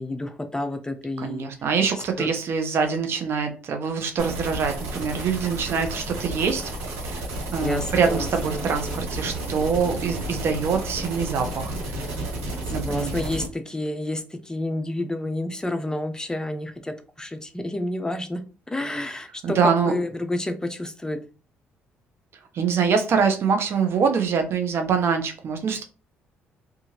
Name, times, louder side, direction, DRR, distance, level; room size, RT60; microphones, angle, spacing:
voice 1, 0.0-1.5 2.2-2.3 7.6-9.1 12.8-18.4 18.7-21.2, left 1 dB, 15° left, 8 dB, 0.5 m, -30 dB
voice 2, 1.2-6.7 7.0-7.3 7.5-12.0 12.7-13.2 19.4-19.9 22.5-25.8, right 6 dB, 60° right, 6 dB, 0.7 m, -24 dB
sound 1, 4.2-13.5, right 2 dB, 85° right, 1.5 m, -32 dB
2.8 x 2.4 x 2.8 m, 0.34 s
supercardioid pair, 65°, 5 cm